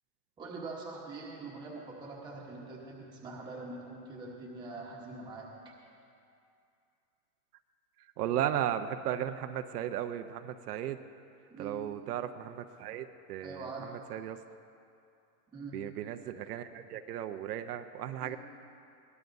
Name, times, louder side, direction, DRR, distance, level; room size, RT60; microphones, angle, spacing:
voice 1, 0.4-5.7 11.5-11.8 13.4-13.9 15.5-15.8 18.2-18.4, right 3 dB, 10° right, -3 dB, 1.1 m, -43 dB
voice 2, 8.2-11.0 11.6-13.7 14.1-14.4 15.7-18.4, right 10 dB, 70° right, 8 dB, 0.8 m, -35 dB
22.0 x 17.5 x 2.7 m, 2.5 s
supercardioid pair, 180°, 48 cm